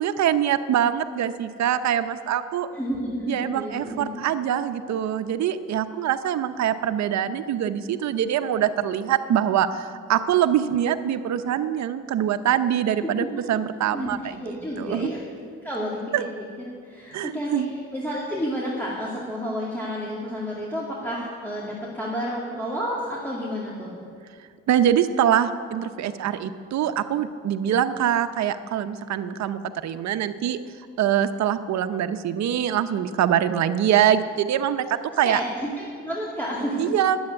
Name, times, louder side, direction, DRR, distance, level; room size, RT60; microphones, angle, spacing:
voice 1, 0.0-2.7 3.3-15.1 16.1-16.2 17.1-17.7 24.7-30.6 31.0-35.4 36.8-37.2, right 10 dB, 65° right, 10 dB, 0.7 m, -24 dB
voice 2, 2.7-4.2 13.2-13.3 13.9-14.1 14.4-15.2 15.6-16.3 16.6-17.6 17.9-23.9 35.2-36.9, equal, 5° left, -6 dB, 2.3 m, -30 dB
10.5 x 7.8 x 9.6 m, 2.1 s
cardioid pair, 90°, 30 cm